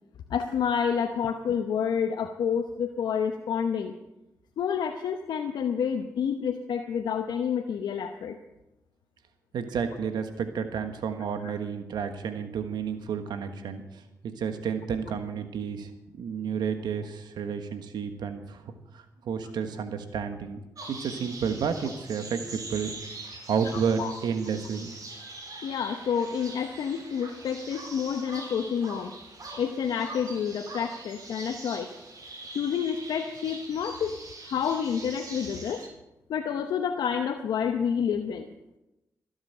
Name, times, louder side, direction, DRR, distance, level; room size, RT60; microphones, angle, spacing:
voice 1, 0.3-3.9 4.6-8.4 11.4-11.5 24.0-24.1 25.6-29.1 29.6-31.9 32.5-34.2 34.4-35.8 36.3-38.5, left 7 dB, 80° left, 5 dB, 0.9 m, -29 dB
voice 2, 9.5-13.8 14.2-20.6 20.9-22.9 23.5-24.9, right 6 dB, 80° right, 8 dB, 1.4 m, -31 dB
sound 1, 20.8-35.9, right 2 dB, 55° right, 4.7 m, -43 dB
21.5 x 8.0 x 6.7 m, 0.96 s
supercardioid pair, 45°, 7 cm